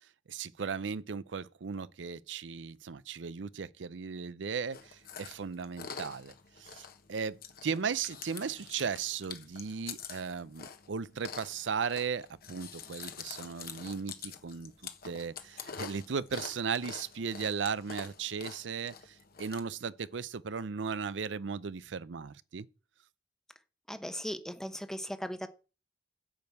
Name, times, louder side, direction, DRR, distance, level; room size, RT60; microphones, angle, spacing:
voice 1, 0.3-14.7 15.0-22.7, right 6 dB, 90° right, 0.6 m, -36 dB
Chewing mastication, 4.7-19.6, left 6 dB, 55° left, 1.3 m, -46 dB
voice 2, 23.9-25.5, equal, 5° left, 0.9 m, -38 dB
9.0 x 5.3 x 7.9 m
head